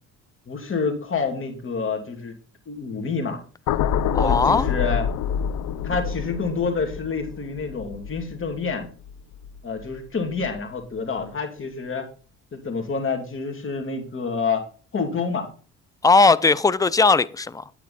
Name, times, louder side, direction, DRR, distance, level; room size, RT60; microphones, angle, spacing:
voice 1, 0.5-2.3 2.7-3.4 4.0-5.0 5.8-8.9 9.6-12.0 12.5-14.6 14.9-15.5, left 4 dB, 45° left, 2.8 m, -28 dB
sound 1, 3.7-10.0 10.3-10.6, left 8 dB, 75° left, 0.7 m, -27 dB
voice 2, 4.1-4.7 16.0-17.6, left 4 dB, 10° left, 0.5 m, -18 dB
9.7 x 9.1 x 4.2 m
cardioid pair, 90°, 30 cm